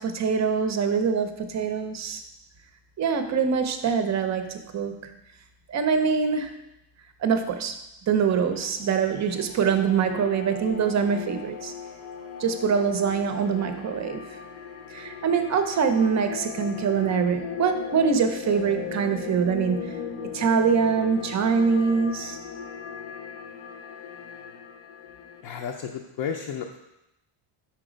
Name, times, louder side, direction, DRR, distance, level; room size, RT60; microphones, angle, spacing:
voice 1, 0.0-2.2 3.0-5.1 5.7-6.6 7.2-7.8 8.1-11.7 12.4-14.4 14.9-20.0 20.3-22.4, right 6 dB, 35° right, 7 dB, 0.5 m, -24 dB
sound 1, 8.5-25.4, left 6 dB, 85° left, 0.9 m, -38 dB
voice 2, 25.4-26.8, left 7 dB, 55° left, 2 dB, 0.6 m, -32 dB
4.9 x 4.4 x 5.0 m, 0.88 s
cardioid pair, 145°, 49 cm